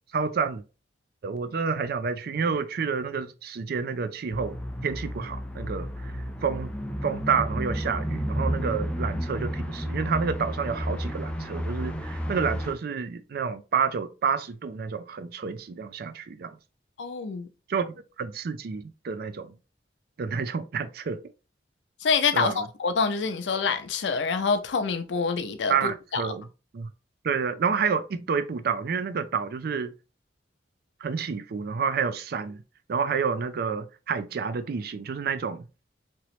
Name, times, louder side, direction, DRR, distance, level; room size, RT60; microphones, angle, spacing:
voice 1, 0.1-0.6 1.2-4.6 4.8-6.7 7.0-16.5 17.7-19.5 20.2-21.2 22.3-22.7 25.7-26.5 26.7-26.9 27.2-29.9 31.0-32.6 32.9-35.7, right 6 dB, 60° right, 0.4 m, -29 dB
sound 1, 4.3-12.7, equal, 5° left, 0.4 m, -32 dB
voice 2, 17.0-17.5 22.0-26.2, left 5 dB, 85° left, 0.5 m, -26 dB
3.0 x 2.9 x 3.0 m
head